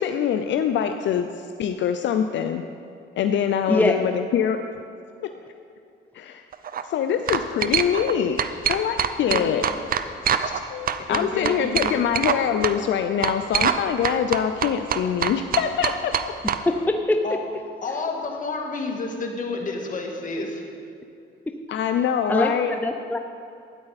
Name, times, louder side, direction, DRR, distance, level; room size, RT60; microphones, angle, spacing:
voice 1, 0.0-2.6 3.2-4.6 6.1-6.4 6.8-8.4 8.7-9.6 10.4-16.3 21.7-22.8, left 8 dB, 70° left, 7 dB, 0.5 m, -24 dB
sound 1, 6.5-6.8 7.3-8.1 8.4-10.6 10.9-12.4 12.6-12.7 13.2-13.8 14.0-16.6, right 8 dB, 45° right, 0.6 m, -24 dB
voice 2, 11.1-12.0 17.2-17.4 17.8-20.6, left 3 dB, 40° left, 1 dB, 1.8 m, -30 dB
voice 3, 16.7-17.2 22.3-22.5 22.8-23.2, left 1 dB, 10° left, 5 dB, 0.5 m, -22 dB
12.5 x 9.6 x 4.1 m, 2.6 s
cardioid pair, 90°, 20 cm